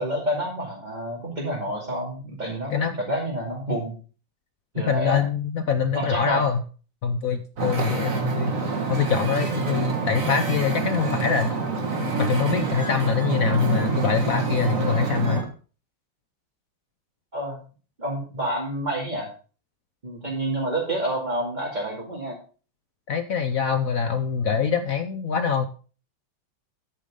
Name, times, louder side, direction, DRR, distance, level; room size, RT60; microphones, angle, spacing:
voice 1, 0.0-3.9 4.7-5.2 5.9-6.4 17.3-17.6 18.0-19.3 20.0-22.4, right 1 dB, 20° right, -4 dB, 2.6 m, -28 dB
voice 2, 4.9-6.6 7.0-8.5 8.9-11.5 12.2-15.4 23.1-25.7, left 6 dB, 65° left, 8 dB, 0.8 m, -24 dB
Wind / Ocean, 7.6-15.4, right 4 dB, 40° right, 2.0 m, -26 dB
9.7 x 9.3 x 3.7 m, 0.37 s
omnidirectional pair, 2.4 m